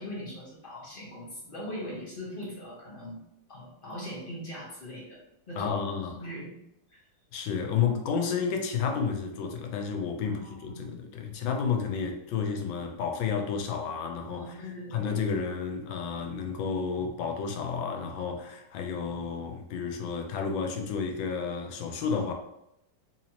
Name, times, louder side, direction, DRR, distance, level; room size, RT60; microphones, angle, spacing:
voice 1, 0.0-3.2 3.5-5.8 6.1-6.5 6.9-7.0 10.2-10.9 14.4-15.1, equal, 40° left, 0.8 m, -40 dB
voice 2, 5.6-6.2 7.3-14.6 14.9-22.3, left 6 dB, 90° left, 1.4 m, -31 dB
3.9 x 2.8 x 2.8 m
omnidirectional pair, 2.0 m